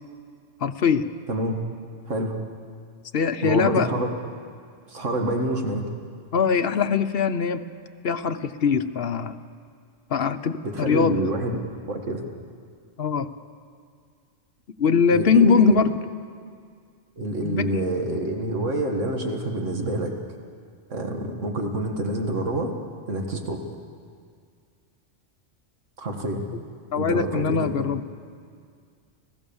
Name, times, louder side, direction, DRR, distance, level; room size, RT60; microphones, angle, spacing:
voice 1, 0.6-1.1 3.1-3.9 6.3-7.7 8.0-9.4 10.1-11.2 13.0-13.3 14.8-16.0 17.4-17.8 26.9-28.0, left 6 dB, 55° left, 10 dB, 1.0 m, -22 dB
voice 2, 3.4-4.1 4.9-5.8 10.6-11.5 11.9-12.3 15.1-15.8 17.2-20.1 20.9-22.7 23.1-23.6 26.0-26.4 27.0-27.9, right 1 dB, 85° right, 3 dB, 2.2 m, -27 dB
30.0 x 16.0 x 7.1 m, 2.2 s
omnidirectional pair, 1.3 m